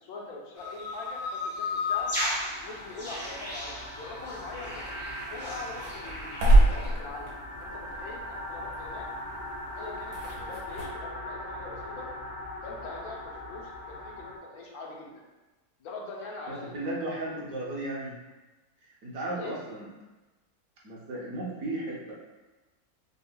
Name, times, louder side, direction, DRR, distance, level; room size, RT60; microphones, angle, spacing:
voice 1, 0.0-2.1 2.6-4.9 5.3-7.3 7.6-9.1 9.8-12.1 12.6-15.2 15.8-16.9 17.2-17.5 19.2-19.6, left 3 dB, 80° left, -2 dB, 1.1 m, -42 dB
sound 1, 0.6-6.9, left 3 dB, 10° right, 0.5 m, -35 dB
sound 2, 1.9-14.4, left 1 dB, 60° left, 0.7 m, -40 dB
sound 3, 4.6-10.8, right 1 dB, 80° right, 1.3 m, -28 dB
voice 2, 16.7-18.1 19.0-19.9 20.8-22.1, right 2 dB, 65° right, -4 dB, 1.1 m, -35 dB
5.4 x 2.0 x 2.2 m, 1.1 s
omnidirectional pair, 1.6 m